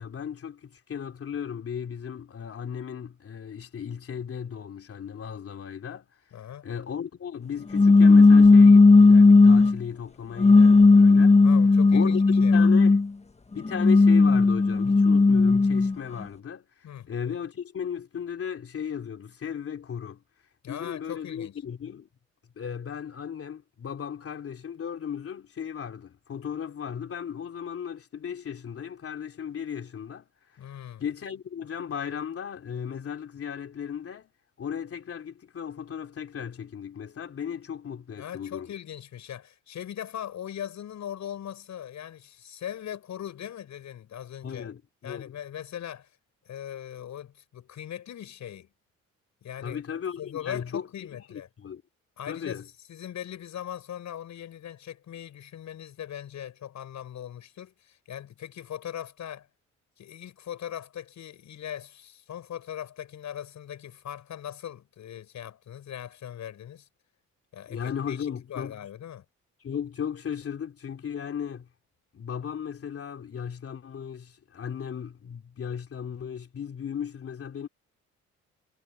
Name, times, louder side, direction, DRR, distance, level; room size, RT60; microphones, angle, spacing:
voice 1, 0.0-6.1 6.6-11.4 11.9-13.0 13.5-20.2 20.7-22.1 22.6-30.3 31.0-34.3 34.6-38.7 44.4-45.3 49.6-51.8 52.3-52.7 67.7-68.8 69.6-71.7 72.1-77.7, left 8 dB, 50° left, 3.1 m, -36 dB
voice 2, 6.3-6.7 11.4-12.7 16.8-17.1 20.6-21.5 30.6-31.1 38.2-44.7 45.0-46.1 46.4-48.7 49.4-51.5 52.2-52.6 52.9-59.5 60.0-66.9 67.5-68.2 68.5-69.2, left 10 dB, 70° left, 8.0 m, -40 dB
sound 1, 7.7-9.8 10.4-13.1 13.7-15.9, left 3 dB, 20° left, 1.5 m, -15 dB
cardioid pair, 90°, 30 cm